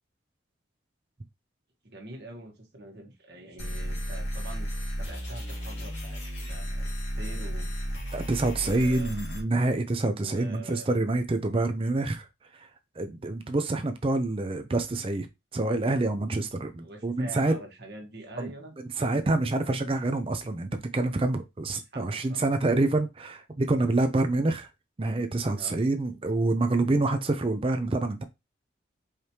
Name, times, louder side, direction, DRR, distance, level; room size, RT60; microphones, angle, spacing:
voice 1, 1.8-6.2 6.5-7.7 8.6-9.1 10.2-11.0 16.8-19.0 21.9-22.5 25.6-25.8, right 1 dB, 55° right, 1.4 m, -45 dB
sound 1, 3.6-9.4, equal, 70° left, 1.8 m, -34 dB
voice 2, 8.1-12.3 12.5-12.7 13.0-15.3 15.5-17.5 18.4-18.5 19.0-24.7 25.0-28.2, right 2 dB, 30° right, 0.4 m, -27 dB
4.9 x 3.1 x 2.8 m
head